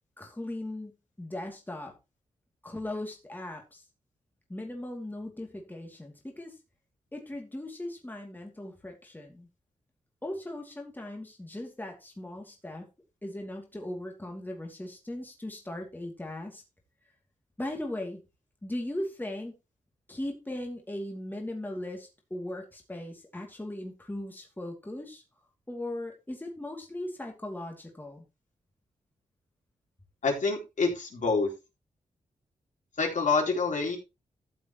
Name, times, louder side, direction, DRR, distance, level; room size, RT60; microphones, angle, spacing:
voice 1, 0.2-1.9 2.6-3.8 4.5-6.6 7.1-9.5 10.2-12.9 13.2-16.6 17.6-18.2 18.6-19.5 20.1-25.2 25.7-28.2, left 1 dB, 15° left, 1 dB, 2.6 m, -38 dB
voice 2, 30.2-31.5 33.0-34.0, left 4 dB, 65° left, 0 dB, 3.9 m, -27 dB
13.5 x 7.1 x 3.0 m, 0.27 s
cardioid pair, 65°, 14 cm